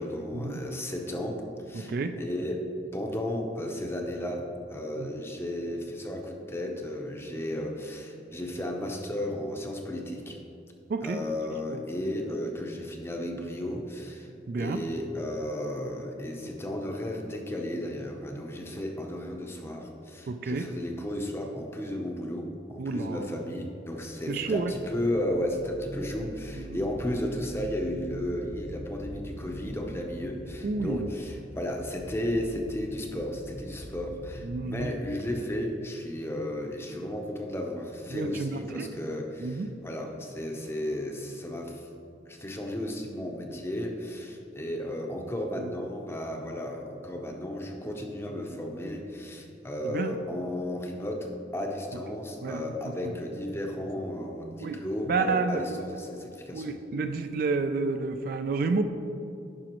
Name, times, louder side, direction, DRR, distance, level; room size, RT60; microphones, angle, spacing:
voice 1, 0.0-10.4 11.0-41.9 42.3-56.7, left 1 dB, 15° left, 2 dB, 0.6 m, -34 dB
voice 2, 1.7-2.1 5.0-5.1 7.3-7.4 10.9-11.2 11.7-11.8 14.5-14.8 20.3-20.7 22.8-23.3 24.3-24.7 26.6-26.8 30.6-31.1 34.4-35.0 38.1-38.9 39.4-39.7 45.6-45.7 49.9-50.1 52.4-52.7 53.0-53.1 54.6-54.8 55.1-56.1 56.5-58.8, right 4 dB, 55° right, 8 dB, 0.3 m, -30 dB
sound 1, 24.2-35.3, equal, 75° left, 1.1 m, -43 dB
11.0 x 5.0 x 3.0 m, 2.7 s
head